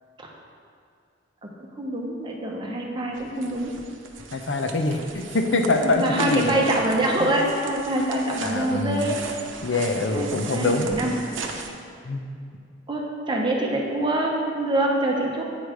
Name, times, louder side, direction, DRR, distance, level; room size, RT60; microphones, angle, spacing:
voice 1, 1.4-3.7 5.8-9.2 10.1-11.3 12.9-15.4, right 1 dB, 25° right, -1 dB, 1.0 m, -25 dB
sound 1, 3.1-11.7, right 4 dB, 90° right, 0.8 m, -38 dB
voice 2, 4.3-6.6 7.2-7.3 8.1-9.1 9.6-10.9 12.0-12.2, left 2 dB, 70° left, 5 dB, 0.7 m, -24 dB
8.9 x 4.8 x 5.1 m, 2.3 s
head